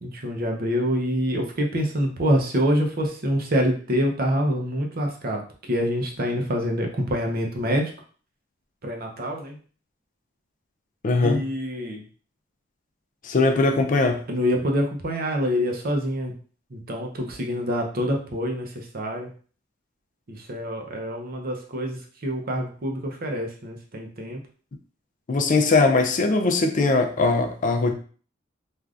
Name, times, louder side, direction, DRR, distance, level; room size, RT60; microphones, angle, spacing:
voice 1, 0.0-7.9 8.8-9.6 11.2-12.0 14.3-16.3 16.7-19.3 20.3-24.4, equal, 50° right, 0.7 m, -26 dB
voice 2, 11.0-11.4 13.2-14.3 25.3-27.9, left 3 dB, 45° left, 0.4 m, -20 dB
3.4 x 2.4 x 2.4 m
head